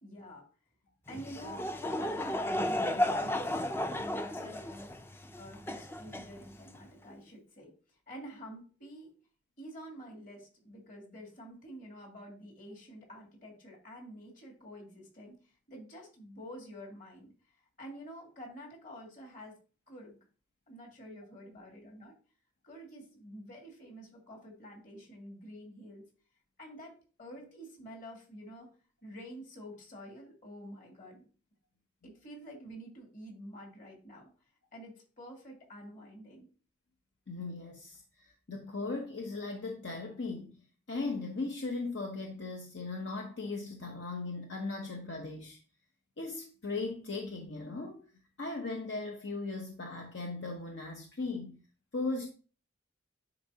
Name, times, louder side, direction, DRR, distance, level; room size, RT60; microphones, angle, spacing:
voice 1, 0.0-0.4 1.1-3.6 3.9-4.9 5.3-7.7 8.1-9.1 9.6-15.4 15.7-17.3 17.8-19.5 19.9-20.2 20.7-22.1 22.6-26.1 26.6-28.7 29.0-31.3 32.0-34.3 34.7-36.5, equal, 45° left, 2.2 m, -48 dB
Laughter / Crowd, 1.1-6.8, left 1 dB, 15° left, 0.4 m, -34 dB
voice 2, 37.3-40.6 40.9-45.6 46.2-48.0 48.4-51.6 51.9-52.3, left 3 dB, 70° left, 0.9 m, -38 dB
9.8 x 4.1 x 2.7 m
head